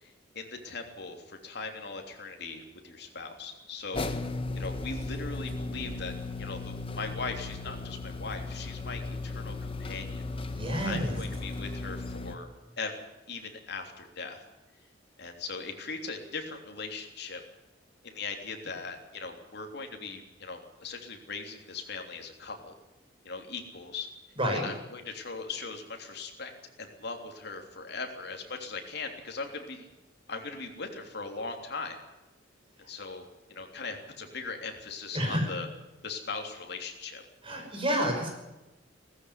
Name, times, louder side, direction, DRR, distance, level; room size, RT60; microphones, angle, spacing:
voice 1, 0.0-4.3 4.5-6.1 6.4-10.2 10.8-12.5 12.8-13.0 13.3-14.4 15.2-17.4 18.0-22.7 23.2-24.1 24.5-26.5 26.8-29.9 30.3-32.0 32.9-35.7 36.0-37.2, left 4 dB, 65° left, 3 dB, 3.3 m, -39 dB
sound 1, 3.9-12.3, left 3 dB, 30° left, 1.4 m, -36 dB
voice 2, 10.6-11.2 24.4-24.6 35.1-35.5 37.4-38.3, equal, 30° right, 2 dB, 6.0 m, -29 dB
17.5 x 15.0 x 9.8 m, 1.0 s
head